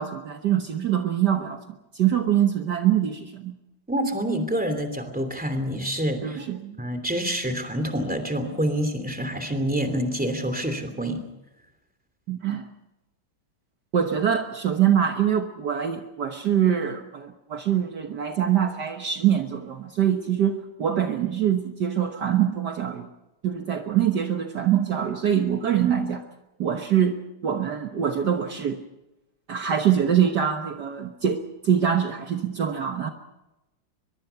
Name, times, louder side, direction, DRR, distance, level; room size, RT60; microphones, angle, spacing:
voice 1, 0.0-1.6 2.0-3.5 6.2-6.8 12.3-12.6 13.9-23.1 23.4-26.2 26.6-27.2 27.4-28.8 29.5-33.1, right 9 dB, 60° right, 5 dB, 1.7 m, -24 dB
voice 2, 3.9-6.4 6.8-11.2, right 1 dB, 5° right, 8 dB, 2.7 m, -27 dB
23.0 x 22.5 x 5.7 m, 0.94 s
omnidirectional pair, 2.2 m